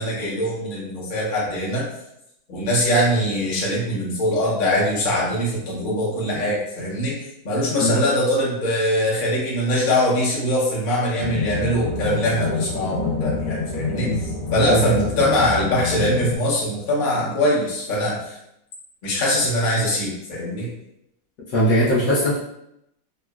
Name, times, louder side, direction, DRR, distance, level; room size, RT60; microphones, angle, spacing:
voice 1, 0.0-1.8 2.5-7.2 7.4-14.1 14.5-18.4 19.0-20.7, left 1 dB, 45° left, -5 dB, 0.6 m, -22 dB
sound 1, 11.2-16.4, left 3 dB, 85° left, 1.4 m, -27 dB
voice 2, 21.5-22.4, equal, 65° left, -7 dB, 0.9 m, -20 dB
3.7 x 2.2 x 2.2 m, 0.80 s
omnidirectional pair, 1.9 m